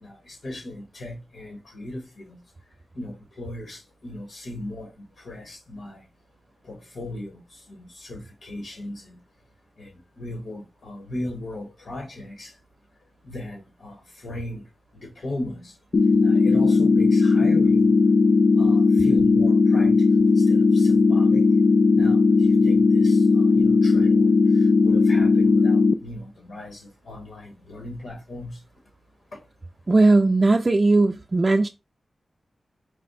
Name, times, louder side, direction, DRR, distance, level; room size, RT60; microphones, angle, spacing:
voice 1, 0.0-2.4 3.0-4.9 5.2-6.0 6.6-9.1 9.8-12.5 13.2-14.6 15.0-15.7 16.2-17.9 18.6-21.4 21.9-24.3 24.8-28.6, left 1 dB, 75° left, 1.1 m, -37 dB
sound 1, 15.9-25.9, left 4 dB, 55° left, 0.3 m, -17 dB
voice 2, 29.9-31.7, right 2 dB, 35° right, 0.3 m, -18 dB
4.9 x 2.1 x 3.9 m
wide cardioid pair, 105°, 0 cm